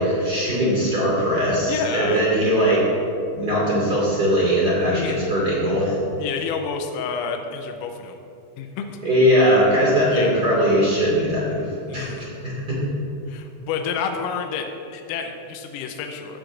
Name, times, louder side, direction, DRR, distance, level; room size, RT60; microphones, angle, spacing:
voice 1, 0.0-2.8 3.4-6.0 9.0-12.8, equal, 50° right, -6 dB, 1.2 m, -20 dB
voice 2, 1.7-2.2 4.9-5.3 6.2-8.2 8.6-9.0 10.1-10.5 11.9-12.3 13.3-16.4, left 6 dB, 85° left, 4 dB, 3.4 m, -29 dB
15.0 x 11.5 x 2.6 m, 2.6 s
omnidirectional pair, 5.9 m